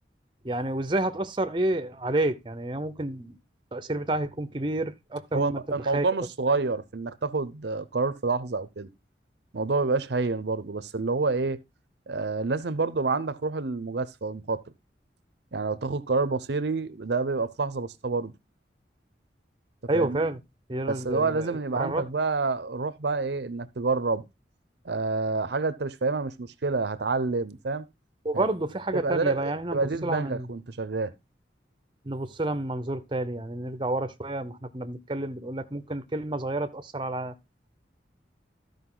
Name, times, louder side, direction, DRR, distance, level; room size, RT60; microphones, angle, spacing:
voice 1, 0.4-3.4 3.7-5.6 5.9-6.0 19.9-20.4 20.7-22.0 28.2-30.5 32.0-37.3, right 2 dB, 25° right, 0.7 m, -29 dB
voice 2, 5.3-8.9 9.5-11.6 12.1-14.6 15.5-18.3 19.9-20.3 20.9-24.2 24.8-27.9 28.3-28.5 28.9-31.1, right 3 dB, 70° right, 0.7 m, -28 dB
13.0 x 5.2 x 3.8 m
head